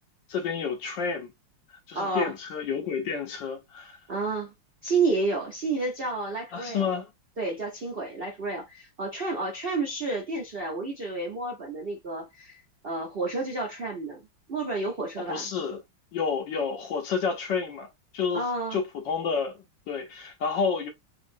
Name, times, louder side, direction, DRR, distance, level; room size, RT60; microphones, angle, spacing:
voice 1, 0.3-1.3 1.9-4.0 6.5-7.1 15.2-15.8 16.1-17.9 18.1-20.9, left 6 dB, 65° left, 1.3 m, -30 dB
voice 2, 1.9-2.3 4.1-4.5 4.8-6.9 7.4-14.2 14.5-15.5 18.3-18.8, right 3 dB, 55° right, 0.6 m, -30 dB
3.6 x 3.0 x 2.6 m
omnidirectional pair, 2.4 m